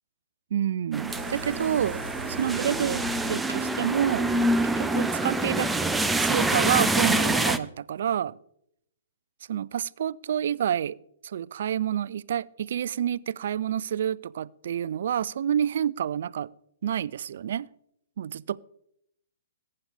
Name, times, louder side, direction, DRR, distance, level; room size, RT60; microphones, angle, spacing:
voice 1, 0.5-2.0 2.4-4.3 4.8-5.7 6.2-8.3 9.5-11.0 11.2-16.5 16.8-17.7 18.2-18.6, right 9 dB, 55° right, 0.4 m, -28 dB
sound 1, 0.9-7.6, right 1 dB, 5° right, 0.6 m, -26 dB
sound 2, 1.1-6.1, right 4 dB, 70° right, 0.9 m, -41 dB
22.0 x 9.9 x 3.6 m
figure-of-eight pair, 115°, 0 cm